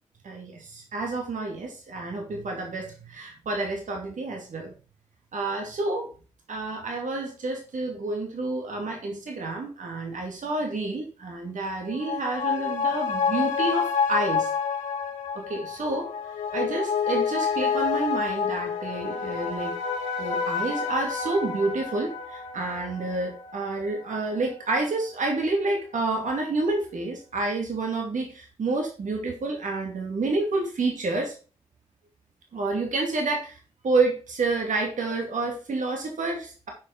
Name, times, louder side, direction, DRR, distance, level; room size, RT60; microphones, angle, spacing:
voice 1, 0.2-4.7 5.3-6.1 6.5-14.5 15.3-16.1 16.5-19.8 20.2-31.3 32.5-33.6 33.8-36.7, right 3 dB, 65° right, 2 dB, 2.5 m, -29 dB
sound 1, 11.7-24.6 24.9-25.0, left 6 dB, 90° left, 2.0 m, -29 dB
10.5 x 5.2 x 5.1 m, 0.36 s
supercardioid pair, 45°, 14 cm